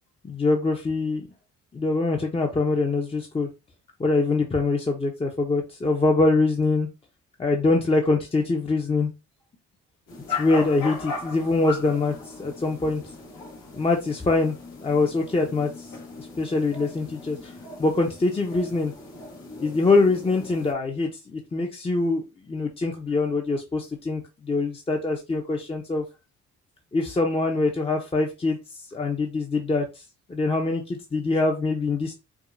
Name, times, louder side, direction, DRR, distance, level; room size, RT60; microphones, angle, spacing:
voice 1, 0.2-1.3 1.7-3.5 4.0-6.9 7.4-9.1 10.4-13.0 13.7-14.5 14.8-15.9 16.2-17.5 17.8-18.9 19.6-22.2 22.5-26.0 26.9-28.6 28.9-29.8 30.3-32.1, left 3 dB, 20° left, 2 dB, 0.7 m, -24 dB
sound 1, 10.1-20.7, left 3 dB, 75° left, 1.4 m, -38 dB
4.8 x 2.3 x 2.6 m, 0.26 s
cardioid pair, 90°, 30 cm